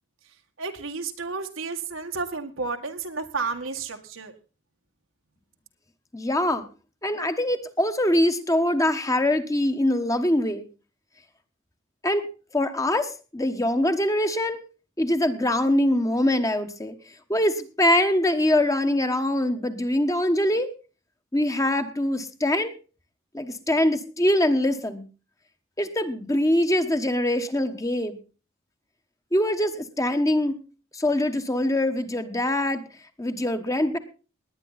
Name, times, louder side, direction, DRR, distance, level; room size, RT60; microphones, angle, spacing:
voice 1, 0.6-4.3, right 4 dB, 85° right, 5 dB, 1.9 m, -32 dB
voice 2, 6.1-6.6 7.0-10.6 12.0-12.3 12.5-14.6 15.0-16.9 17.3-20.7 21.3-22.7 23.3-25.0 25.8-28.2 29.3-30.5 30.9-32.8 33.2-34.0, left 1 dB, 15° left, 8 dB, 1.2 m, -23 dB
19.5 x 9.8 x 4.1 m, 0.35 s
head